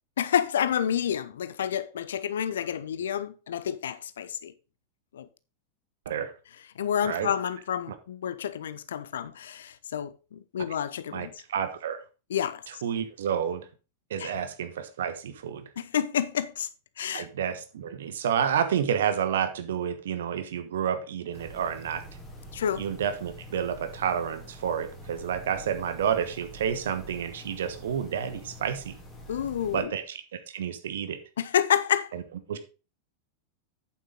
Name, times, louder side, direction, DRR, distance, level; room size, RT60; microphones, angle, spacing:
voice 1, 0.2-4.5 5.1-5.3 6.8-11.3 12.3-12.8 14.2-14.3 15.8-16.7 17.0-17.3 22.5-22.8 29.3-29.9 31.4-32.1, left 9 dB, 65° left, 0.7 m, -29 dB
voice 2, 11.1-12.0 12.8-13.7 14.1-15.7 17.1-22.0 22.8-29.0 29.7-30.2 30.5-31.2 32.1-32.2 32.5-32.6, right 8 dB, 60° right, 1.2 m, -30 dB
sound 1, 21.3-29.8, right 1 dB, 10° left, 3.2 m, -46 dB
8.7 x 7.4 x 3.7 m
figure-of-eight pair, 90°, 0 cm